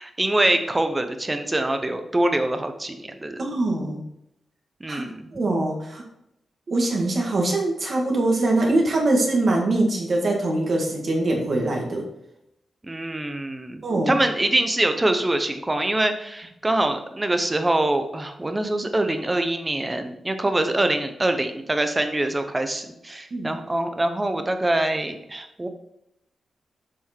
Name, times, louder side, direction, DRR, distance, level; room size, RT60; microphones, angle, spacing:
voice 1, 0.0-3.4 4.8-5.3 12.8-25.7, right 1 dB, 15° right, 7 dB, 0.9 m, -24 dB
voice 2, 3.4-4.0 4.9-5.0 5.3-6.0 6.7-12.1 13.8-14.2 23.3-23.5, right 2 dB, 45° right, 0 dB, 1.7 m, -23 dB
7.5 x 6.4 x 4.4 m, 0.81 s
wide cardioid pair, 155°, 0 cm